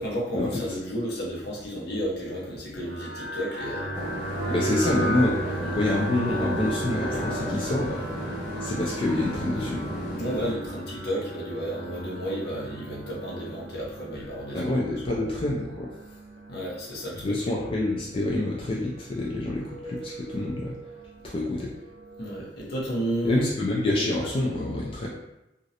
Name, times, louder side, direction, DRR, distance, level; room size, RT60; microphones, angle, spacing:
voice 1, 0.0-4.0 4.5-4.7 5.6-5.8 10.2-14.7 16.5-17.4 22.2-23.5, equal, 60° left, -5 dB, 0.7 m, -32 dB
sound 1, 2.8-22.5, right 1 dB, 75° right, 0.5 m, -36 dB
sound 2, 3.9-10.5, equal, 15° left, 0.8 m, -35 dB
voice 2, 4.5-8.0 8.6-9.8 14.5-15.9 17.2-20.7 21.2-21.7 23.2-25.1, left 2 dB, 30° left, -4 dB, 0.3 m, -27 dB
2.5 x 2.0 x 2.7 m, 0.93 s
head